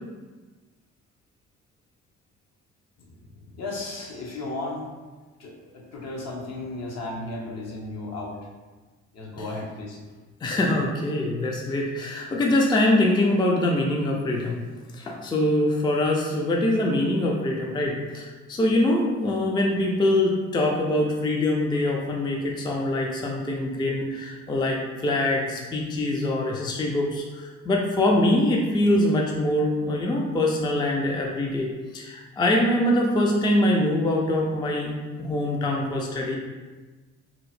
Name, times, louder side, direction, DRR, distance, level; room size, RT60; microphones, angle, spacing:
voice 1, 3.6-4.9 5.4-8.3 9.1-10.0, left 2 dB, 60° left, -1 dB, 0.8 m, -34 dB
voice 2, 10.4-14.6 14.9-27.2 27.6-36.4, left 1 dB, 15° left, -1 dB, 0.4 m, -24 dB
2.8 x 2.0 x 4.0 m, 1.3 s
cardioid pair, 90°, 30 cm